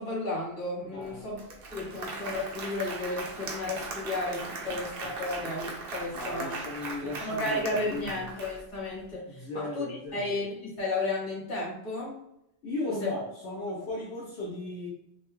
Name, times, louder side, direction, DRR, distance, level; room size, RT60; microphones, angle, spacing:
voice 1, 0.0-1.4 1.7-6.6 7.2-12.2 13.0-13.1, left 2 dB, 45° left, -6 dB, 1.4 m, -33 dB
voice 2, 0.9-1.3 6.1-8.3 9.3-10.3 12.6-14.9, left 2 dB, 75° left, -5 dB, 1.0 m, -36 dB
Applause, 1.0-1.1 1.4-8.9, right 3 dB, 65° right, 0.8 m, -39 dB
2.9 x 2.2 x 3.0 m, 0.81 s
omnidirectional pair, 1.1 m